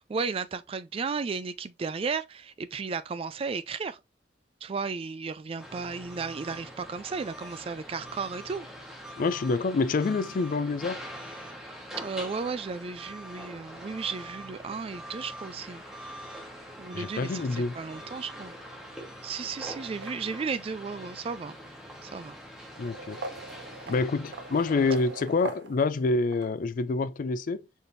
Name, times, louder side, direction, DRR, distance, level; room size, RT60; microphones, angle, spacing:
voice 1, 0.1-4.0 4.6-8.7 12.0-15.8 16.8-18.5 19.2-21.6 22.0-22.4 23.9-24.0, right 5 dB, 30° right, 0.3 m, -34 dB
sound 1, 5.6-25.4, equal, 5° right, 1.1 m, -44 dB
voice 2, 9.2-11.0 16.9-17.7 22.8-23.2 23.9-27.6, left 3 dB, 50° left, 0.4 m, -27 dB
sound 2, 19.6-20.6 21.6-21.7 22.7-26.5, right 2 dB, 75° right, 0.6 m, -42 dB
4.2 x 3.4 x 2.6 m
head